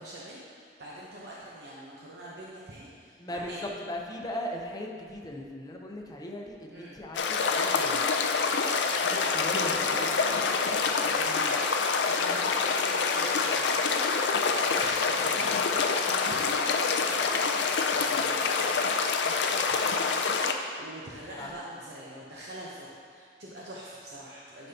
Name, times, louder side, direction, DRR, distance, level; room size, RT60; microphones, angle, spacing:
voice 1, 0.0-3.6 6.7-7.0 11.1-11.4 12.1-24.7, right 1 dB, 65° right, -6 dB, 0.9 m, -44 dB
voice 2, 3.2-8.1 8.9-11.6 21.4-21.5, left 1 dB, 20° left, 0 dB, 0.7 m, -39 dB
sound 1, 7.1-20.5, left 5 dB, 90° left, 0.5 m, -26 dB
10.0 x 5.4 x 2.9 m, 2.1 s
head